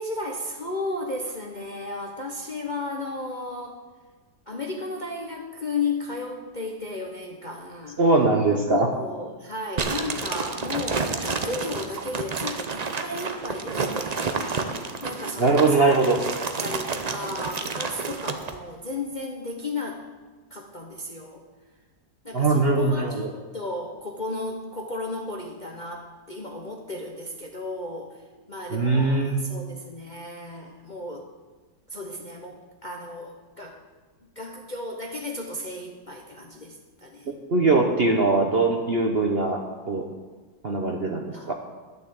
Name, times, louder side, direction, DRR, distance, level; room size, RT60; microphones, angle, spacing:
voice 1, 0.0-3.8 4.5-8.0 8.5-14.5 15.0-16.1 16.6-20.1 20.5-21.4 22.2-31.3 31.9-33.8 34.2-37.3 41.3-41.5, left 2 dB, 35° left, 1 dB, 0.8 m, -34 dB
voice 2, 8.0-8.9 15.4-16.2 22.3-23.3 28.7-29.4 37.3-39.6 39.9-40.1 40.6-41.5, right 3 dB, 45° right, 3 dB, 0.9 m, -21 dB
sound 1, 9.8-18.6, right 4 dB, 75° right, 0.3 m, -30 dB
11.5 x 6.8 x 8.6 m, 1.3 s
omnidirectional pair, 1.9 m